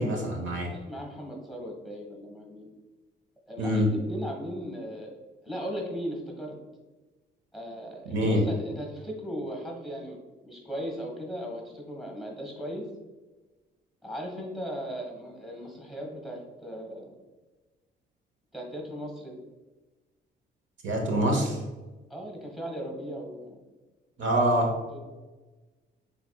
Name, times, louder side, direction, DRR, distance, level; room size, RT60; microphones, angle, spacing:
voice 1, 0.0-0.7 3.6-3.9 8.1-8.4 20.8-21.6 24.2-24.7, equal, 70° right, 1 dB, 1.0 m, -25 dB
voice 2, 0.7-2.7 3.5-6.5 7.5-12.9 14.0-17.1 18.5-19.4 22.1-23.6 24.9-25.0, equal, ahead, 0 dB, 1.4 m, -37 dB
5.8 x 3.5 x 2.3 m, 1.2 s
cardioid pair, 90°, 20 cm